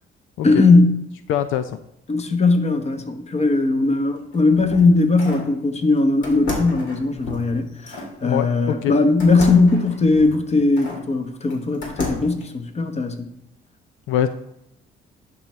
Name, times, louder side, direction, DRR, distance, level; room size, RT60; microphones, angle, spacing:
voice 1, 0.4-1.0 2.1-13.3, left 3 dB, 35° left, 6 dB, 1.0 m, -19 dB
voice 2, 1.3-1.8 8.2-8.9 14.1-14.3, left 11 dB, 85° left, 10 dB, 0.4 m, -23 dB
sound 1, 4.2-5.5 6.2-8.1 9.2-11.0 11.5-12.4, left 2 dB, 70° left, 2.1 m, -32 dB
11.0 x 4.5 x 3.1 m, 0.81 s
cardioid pair, 90°, 20 cm